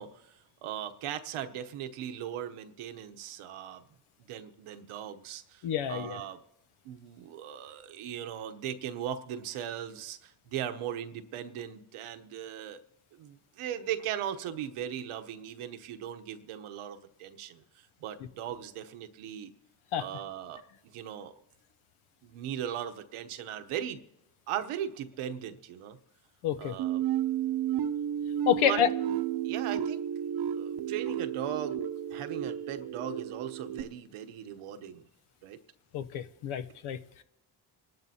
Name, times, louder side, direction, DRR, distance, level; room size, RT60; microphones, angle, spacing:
voice 1, 0.0-3.8 4.2-5.6 5.9-6.4 6.8-12.8 13.1-19.5 20.0-20.6 20.9-21.4 22.2-24.0 24.5-26.0 26.6-27.0 28.6-28.8 29.4-30.0 30.4-31.8 32.1-35.1 35.4-35.6, right 10 dB, 85° right, 1.0 m, -38 dB
voice 2, 5.6-6.2 19.9-20.0 26.4-26.8 28.5-28.9 35.9-37.0, left 9 dB, 75° left, 0.8 m, -28 dB
sound 1, 26.8-33.8, right 10 dB, 50° right, 0.8 m, -32 dB
25.5 x 12.0 x 2.8 m
cardioid pair, 85°, 49 cm